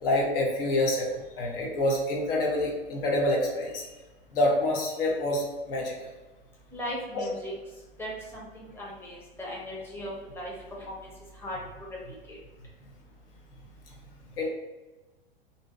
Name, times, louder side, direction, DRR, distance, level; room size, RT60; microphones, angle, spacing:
voice 1, 0.0-3.9 4.3-5.9 7.1-7.2 14.4-14.5, left 1 dB, 60° left, -1 dB, 1.0 m, -27 dB
voice 2, 6.7-7.5 8.0-12.4, equal, 5° left, -4 dB, 0.8 m, -38 dB
2.8 x 2.7 x 3.5 m, 1.1 s
hypercardioid pair, 100°, 31 cm